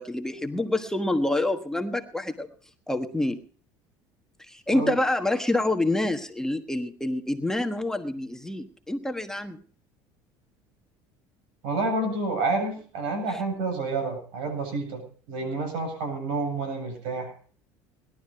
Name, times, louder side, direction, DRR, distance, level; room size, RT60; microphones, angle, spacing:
voice 1, 0.0-2.5 2.9-3.4 4.4-9.6 13.3-13.4, left 1 dB, 5° left, 5 dB, 1.3 m, -27 dB
voice 2, 11.6-15.0 15.3-17.3, right 3 dB, 75° right, 6 dB, 8.0 m, -29 dB
20.0 x 12.0 x 4.7 m, 0.43 s
supercardioid pair, 105°, 9 cm